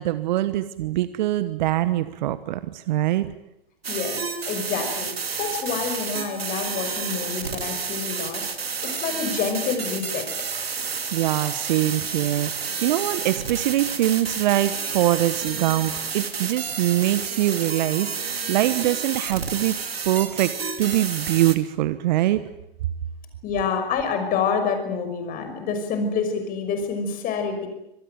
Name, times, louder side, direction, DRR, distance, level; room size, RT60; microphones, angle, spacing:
voice 1, 0.0-3.3 11.1-19.8 20.0-22.4, right 14 dB, 50° right, 14 dB, 1.2 m, -23 dB
sound 1, 3.8-21.6, right 5 dB, 80° right, 2.8 m, -30 dB
voice 2, 3.9-5.1 5.4-8.5 8.8-10.3 23.4-27.7, left 5 dB, 30° left, 7 dB, 5.8 m, -27 dB
26.0 x 19.0 x 9.3 m, 0.83 s
hypercardioid pair, 120°, 30 cm